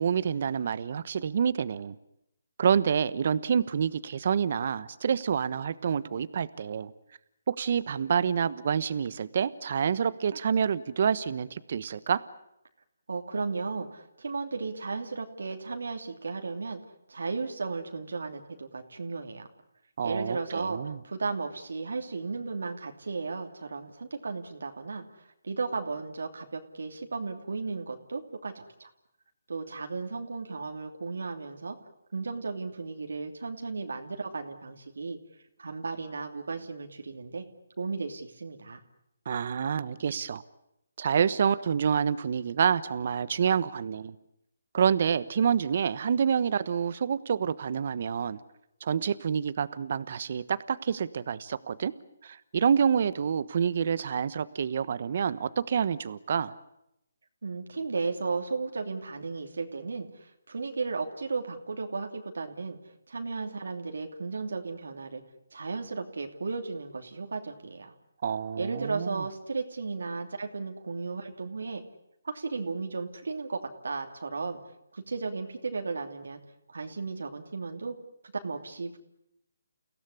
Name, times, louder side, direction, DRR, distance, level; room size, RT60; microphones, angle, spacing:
voice 1, 0.0-1.9 2.6-6.9 7.5-12.2 20.0-21.0 39.2-40.4 41.0-44.1 44.7-48.4 48.8-51.9 52.2-56.5 68.2-69.2, right 7 dB, 50° right, 16 dB, 1.1 m, -27 dB
voice 2, 13.1-16.8 17.1-19.5 20.0-28.9 29.5-31.8 32.1-35.2 35.6-37.4 37.8-38.8 57.4-62.8 63.1-65.2 65.5-67.9 68.6-71.8 72.2-74.6 74.9-76.4 76.7-78.0 78.3-79.0, right 4 dB, 75° right, 4 dB, 2.8 m, -35 dB
30.0 x 17.0 x 9.9 m, 0.82 s
hypercardioid pair, 155°, 0 cm